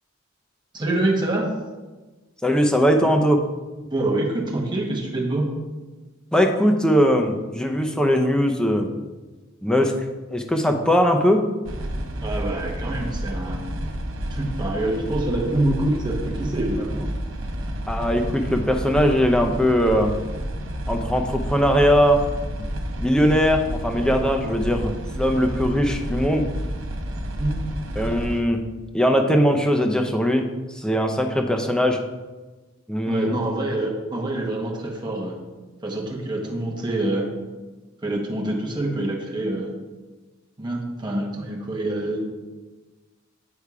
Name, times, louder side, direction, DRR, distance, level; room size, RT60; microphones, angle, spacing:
voice 1, 0.7-1.5 3.8-5.5 12.2-13.6 14.3-17.1 27.4-27.5 33.0-35.4 35.8-37.3 38.0-39.7 40.6-42.3, right 1 dB, 20° right, -1 dB, 1.0 m, -26 dB
voice 2, 2.4-3.4 6.3-8.9 9.6-9.9 10.3-11.4 17.9-20.1 20.9-22.2 22.6-22.7 23.0-26.4 28.0-28.6 28.9-32.0 32.9-33.4, equal, 5° left, 3 dB, 0.5 m, -20 dB
sound 1, 11.6-28.4, equal, 70° right, 0.8 m, -30 dB
8.2 x 3.5 x 4.7 m, 1.2 s
head